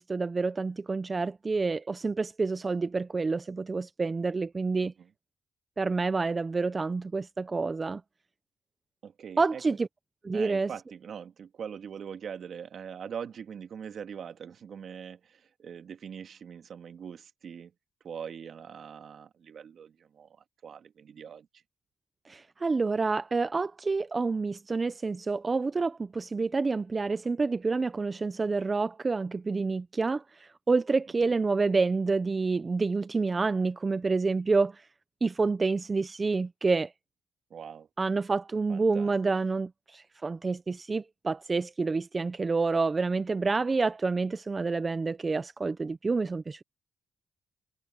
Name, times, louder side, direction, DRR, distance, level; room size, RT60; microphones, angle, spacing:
voice 1, 0.0-4.9 5.8-8.0 9.4-9.9 10.2-10.7 22.3-34.9 35.2-36.9 38.0-46.6, right 4 dB, 30° right, 0.7 m, -28 dB
voice 2, 9.0-9.6 10.3-17.7 18.0-20.4 20.6-21.5 37.5-37.9 38.7-39.1, right 7 dB, 55° right, 2.0 m, -42 dB
cardioid pair, 90°, 0 cm